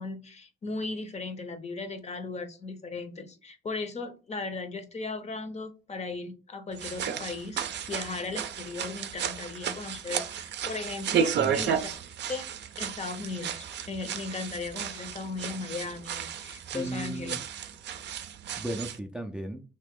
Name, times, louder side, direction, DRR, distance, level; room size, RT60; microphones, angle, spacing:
voice 1, 0.0-11.9 12.3-12.4 12.8-17.3, left 3 dB, 35° left, 0.7 m, -37 dB
sound 1, 6.7-19.0, right 8 dB, 60° right, 0.5 m, -33 dB
voice 2, 11.4-11.7 16.7-17.4 18.6-19.6, right 1 dB, 5° right, 0.4 m, -35 dB
2.9 x 2.8 x 3.6 m
cardioid pair, 90°, 20 cm